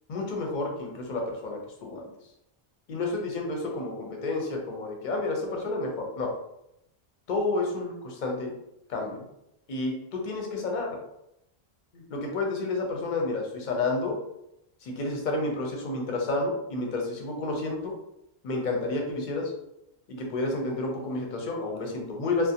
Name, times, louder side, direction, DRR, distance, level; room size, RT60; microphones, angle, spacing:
voice 1, 0.1-2.1 2.9-6.3 7.3-8.5 8.9-9.3 9.7-11.0 11.9-14.2 14.8-17.9 18.4-19.5 20.1-22.5, left 2 dB, 55° left, 1 dB, 0.6 m, -30 dB
2.4 x 2.0 x 2.7 m, 0.82 s
omnidirectional pair, 1.0 m